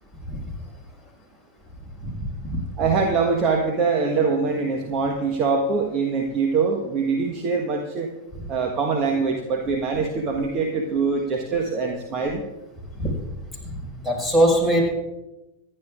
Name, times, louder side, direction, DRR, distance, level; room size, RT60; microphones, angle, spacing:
voice 1, 2.0-2.6 12.9-13.1 13.6-14.9, right 1 dB, 5° right, -1 dB, 5.4 m, -22 dB
voice 2, 2.8-8.1 8.5-12.4, right 4 dB, 35° right, 2 dB, 1.4 m, -23 dB
25.0 x 11.0 x 2.5 m, 1.0 s
figure-of-eight pair, 90°, 0 cm